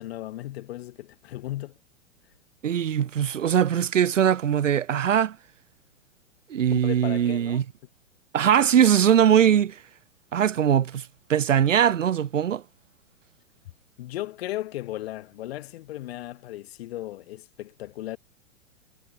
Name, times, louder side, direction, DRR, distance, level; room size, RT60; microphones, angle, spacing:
voice 1, 0.0-1.8 6.7-7.6 14.0-18.2, left 15 dB, 55° left, 5.1 m, -36 dB
voice 2, 2.6-5.4 6.5-7.6 8.3-9.8 10.3-12.6, right 9 dB, 85° right, 0.8 m, -21 dB
hypercardioid pair, 115°, 37 cm